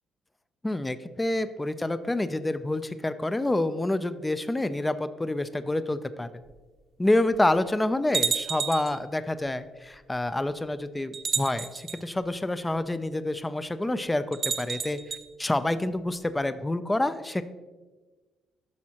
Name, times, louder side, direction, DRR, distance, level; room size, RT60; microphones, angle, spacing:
voice 1, 0.6-6.3 7.0-15.0 15.4-17.4, left 1 dB, 15° left, 12 dB, 0.4 m, -28 dB
sound 1, 6.5-6.6 7.3-7.4 8.1-9.0 10.1-10.2 11.1-12.0 14.3-15.2, right 6 dB, 50° right, 0.8 m, -30 dB
10.5 x 6.2 x 2.9 m, 1.3 s
cardioid pair, 85°, 0 cm